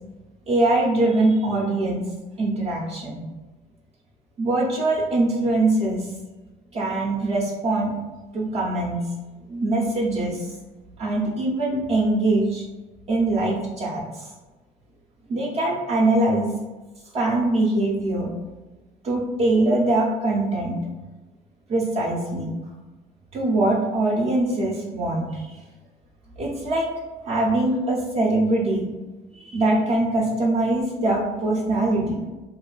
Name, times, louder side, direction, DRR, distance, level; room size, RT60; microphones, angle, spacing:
voice 1, 0.5-2.1 2.4-3.2 4.4-6.1 6.7-8.0 8.3-9.0 9.5-10.5 11.0-12.6 13.1-14.3 15.3-16.5 17.1-18.3 19.0-20.7 21.7-22.5 23.3-25.5 26.4-26.9 27.3-28.9 29.4-32.2, right 2 dB, 40° right, -4 dB, 0.5 m, -22 dB
3.0 x 2.2 x 2.3 m, 1.2 s
cardioid pair, 110°, 17 cm